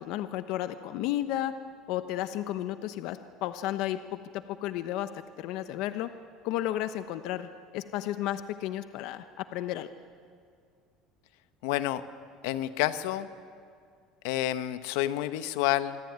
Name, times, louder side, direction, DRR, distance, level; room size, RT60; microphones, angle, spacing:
voice 1, 0.0-1.5 1.9-4.0 4.6-6.1 6.4-9.9, left 13 dB, 60° left, 10 dB, 1.0 m, -33 dB
voice 2, 11.6-12.0 12.4-13.3 14.2-16.0, left 14 dB, 85° left, 11 dB, 1.2 m, -29 dB
26.5 x 23.0 x 9.6 m, 2.2 s
cardioid pair, 170°, 0 cm